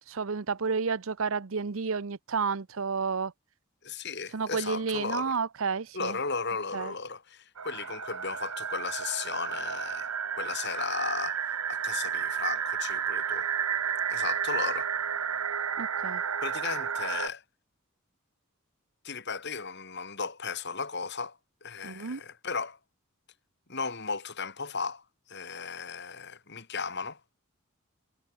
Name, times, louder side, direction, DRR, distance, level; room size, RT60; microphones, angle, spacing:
voice 1, 0.1-3.3 4.3-6.2 6.7-6.9 15.8-16.2 21.8-22.2, right 5 dB, 65° right, 0.7 m, -31 dB
voice 2, 3.8-5.4 5.9-13.5 14.1-14.9 16.4-17.4 19.0-22.8 23.7-25.0 25.3-27.2, left 5 dB, 50° left, 3.4 m, -35 dB
sound 1, 7.6-17.3, right 7 dB, 85° right, 1.7 m, -32 dB
head